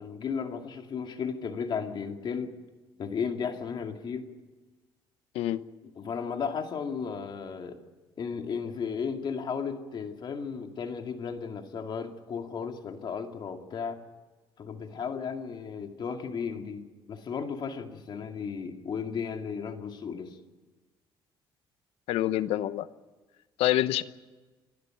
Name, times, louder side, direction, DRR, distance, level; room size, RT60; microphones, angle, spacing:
voice 1, 0.0-2.5 3.0-4.3 6.0-7.8 8.2-14.0 14.6-20.4, left 6 dB, 50° left, 5 dB, 2.4 m, -34 dB
voice 2, 22.1-22.9 23.6-24.0, left 14 dB, 80° left, 14 dB, 0.9 m, -26 dB
28.5 x 12.0 x 9.3 m, 1.2 s
cardioid pair, 110°, 10 cm